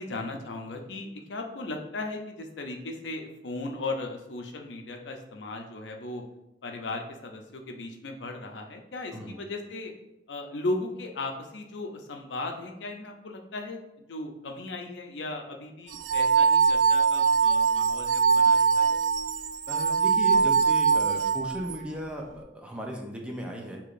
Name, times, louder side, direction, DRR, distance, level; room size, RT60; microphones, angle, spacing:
voice 1, 0.0-6.2 6.6-9.9 10.3-19.0, left 2 dB, 85° left, 3 dB, 0.6 m, -37 dB
sound 1, 15.9-21.8, right 5 dB, 85° right, 0.3 m, -22 dB
voice 2, 19.7-23.8, equal, 5° right, 0 dB, 0.6 m, -36 dB
6.4 x 2.9 x 2.5 m, 0.90 s
head